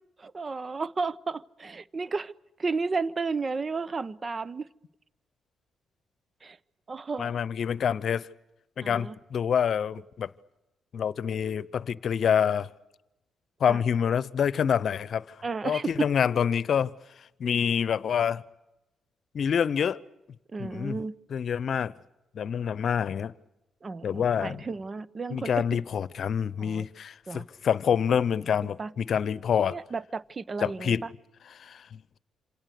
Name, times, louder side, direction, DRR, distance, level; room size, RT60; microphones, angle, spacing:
voice 1, 0.2-2.3 2.6-4.7 6.4-6.6 6.9-7.4 8.8-9.2 13.7-13.8 15.4-16.1 20.5-21.1 23.8-25.7 26.6-26.9 27.3-27.5 28.6-28.9 29.7-31.1, right 4 dB, 40° right, 1.0 m, -33 dB
voice 2, 7.2-8.3 8.8-10.3 10.9-12.7 13.6-15.4 15.6-16.9 17.4-18.4 19.3-20.0 20.6-21.0 21.3-21.9 22.3-23.3 24.0-24.6 25.3-29.8 30.6-31.0 31.6-32.0, left 8 dB, 60° left, 0.8 m, -27 dB
27.0 x 27.0 x 6.8 m
hypercardioid pair, 45°, 0 cm